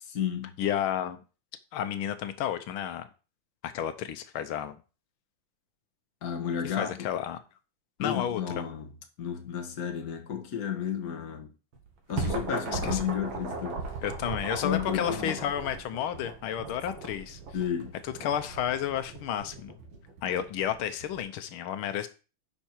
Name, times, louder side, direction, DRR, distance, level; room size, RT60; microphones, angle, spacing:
voice 1, 0.1-0.6 6.2-7.1 8.0-8.9 9.2-11.5 12.1-13.9 14.6-15.4 17.5-17.9, left 8 dB, 50° left, 1.7 m, -32 dB
voice 2, 0.6-1.2 1.7-3.1 3.6-4.8 6.6-7.4 8.0-8.6 12.7-13.0 14.0-17.4 18.0-19.7 20.2-22.1, left 10 dB, 85° left, 1.6 m, -31 dB
sound 1, 11.7-21.2, right 4 dB, 75° right, 2.4 m, -37 dB
10.5 x 5.5 x 4.5 m
omnidirectional pair, 2.3 m